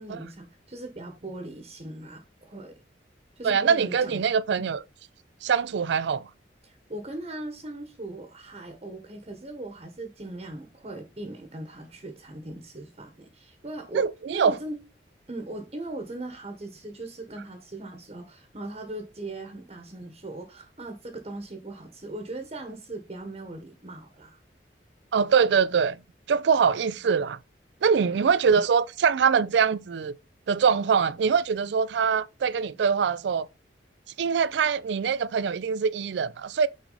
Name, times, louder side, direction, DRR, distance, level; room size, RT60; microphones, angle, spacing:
voice 1, 0.0-2.8 3.4-4.3 4.6-4.7 6.6-14.1 14.3-14.8 15.3-24.4 28.0-28.2, right 2 dB, 35° right, 1.1 m, -39 dB
voice 2, 3.4-4.8 5.4-6.2 13.9-14.6 25.1-26.0 26.3-27.4 27.8-30.1 30.5-33.5 34.2-36.7, right 6 dB, 75° right, 0.4 m, -23 dB
6.1 x 4.8 x 3.9 m
head